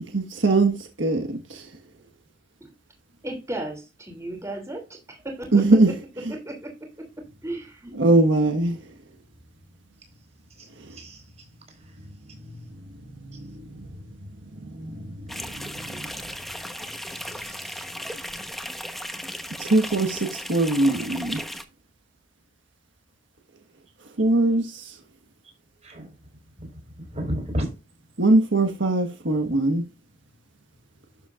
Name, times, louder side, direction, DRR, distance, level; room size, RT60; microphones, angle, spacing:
voice 1, 0.1-1.7 5.5-5.9 6.2-6.3 8.0-8.8 10.8-11.0 12.4-12.5 13.0-13.9 14.5-16.1 19.6-21.4 24.2-25.0 28.2-29.8, right 2 dB, 75° right, 1.6 m, -22 dB
voice 2, 3.2-5.5 6.3-6.7 7.4-8.0, right 1 dB, 15° right, 3.0 m, -35 dB
voice 3, 10.6-12.0 13.3-13.4 17.1-17.8 25.8-26.1 26.6-27.7, equal, 35° right, 5.0 m, -34 dB
sound 1, 15.3-21.6, equal, ahead, 1.2 m, -36 dB
12.0 x 7.0 x 2.6 m
head